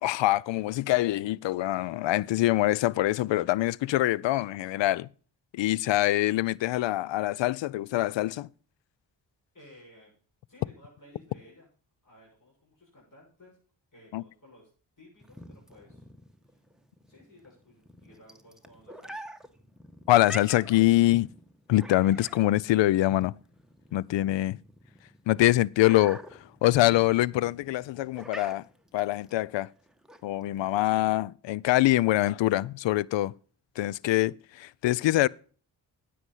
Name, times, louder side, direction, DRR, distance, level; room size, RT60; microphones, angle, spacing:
voice 1, 0.0-5.1 5.5-8.5 14.1-14.2 20.1-21.3 21.7-23.3 23.9-24.6 25.3-28.7 28.9-29.7 30.2-33.3 33.8-35.3, left 16 dB, 65° left, 0.5 m, -24 dB
voice 2, 9.5-10.1 10.5-11.7 12.0-13.6 13.9-14.7 15.0-16.0 16.4-16.6 17.1-19.3, left 1 dB, 40° left, 6.2 m, -55 dB
sound 1, 15.2-31.2, equal, ahead, 1.3 m, -47 dB
9.8 x 7.8 x 5.5 m
supercardioid pair, 45°, 47 cm